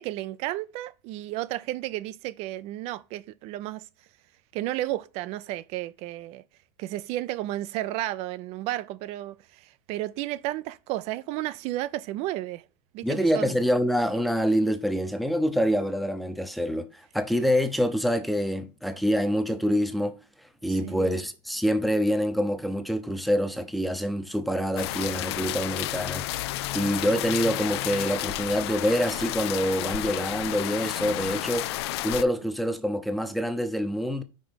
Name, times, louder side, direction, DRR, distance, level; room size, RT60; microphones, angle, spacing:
voice 1, 0.0-3.8 4.5-6.4 6.8-12.6 12.9-13.6 20.7-21.1, right 15 dB, 50° right, 0.5 m, -33 dB
voice 2, 13.0-20.2 20.6-26.3 26.7-31.7 32.0-34.2, equal, ahead, 0.8 m, -26 dB
sound 1, 24.8-32.2, left 16 dB, 80° left, 0.4 m, -31 dB
5.2 x 4.9 x 6.4 m
supercardioid pair, 130°, 13 cm